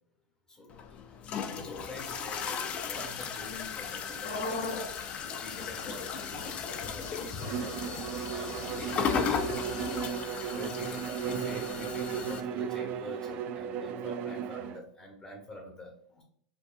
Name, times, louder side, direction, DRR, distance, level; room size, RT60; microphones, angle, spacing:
voice 1, 0.5-16.2, left 1 dB, 20° left, 1 dB, 0.8 m, -46 dB
sound 1, 0.7-12.4, left 7 dB, 35° left, 0.4 m, -36 dB
sound 2, 1.9-10.1, left 3 dB, 80° left, 0.9 m, -43 dB
Bowed string instrument, 7.4-14.8, right 8 dB, 45° right, 0.4 m, -35 dB
4.5 x 2.6 x 2.4 m, 0.65 s
hypercardioid pair, 110°, 4 cm